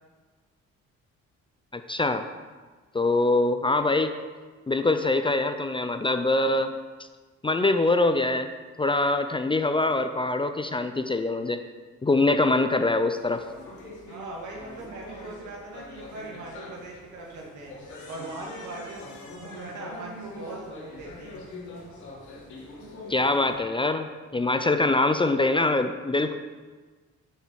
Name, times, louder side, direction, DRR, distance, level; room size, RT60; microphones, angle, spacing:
voice 1, 1.7-2.3 2.9-4.1 4.7-6.7 7.4-8.5 8.8-11.6 12.0-13.4 23.1-26.4, left 2 dB, 15° left, 8 dB, 0.4 m, -24 dB
sound 1, 13.1-23.6, left 2 dB, 75° left, 2.7 m, -43 dB
voice 2, 14.1-17.7 18.1-19.1 19.3-21.4, right 2 dB, 75° right, -3 dB, 2.4 m, -40 dB
7.5 x 6.7 x 4.7 m, 1.4 s
cardioid pair, 90°, 30 cm